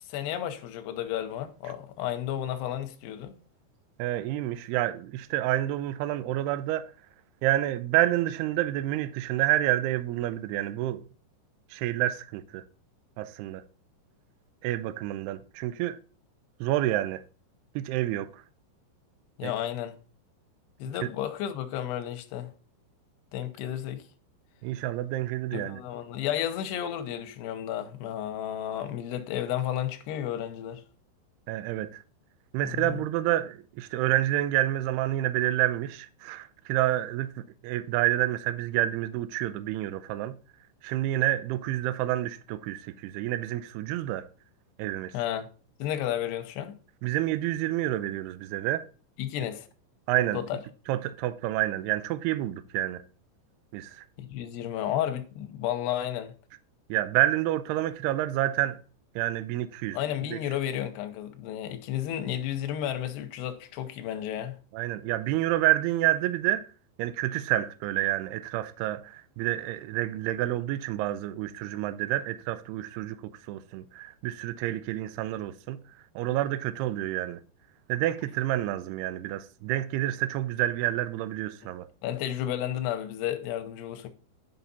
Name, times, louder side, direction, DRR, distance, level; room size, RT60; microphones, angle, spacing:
voice 1, 0.1-3.3 19.4-20.0 20.8-22.5 23.3-24.0 25.5-30.8 32.6-33.0 45.1-45.5 45.8-46.8 49.2-49.7 50.3-50.6 54.2-56.3 59.9-64.6 81.6-81.7 82.0-84.1, left 11 dB, 75° left, 2.6 m, -32 dB
voice 2, 4.0-6.9 7.4-11.0 11.7-12.6 13.2-13.6 14.6-16.0 16.6-17.2 17.8-18.3 19.4-19.5 21.0-21.1 24.6-25.8 31.5-32.0 32.5-40.4 40.8-44.3 44.8-45.1 47.0-48.8 50.1-50.4 50.9-53.0 53.7-54.0 56.9-58.8 59.2-60.0 60.3-60.4 64.7-66.7 67.0-73.2 73.5-75.8 76.2-77.4 77.9-81.9, right 14 dB, 85° right, 2.3 m, -28 dB
10.5 x 5.8 x 4.1 m
omnidirectional pair, 5.5 m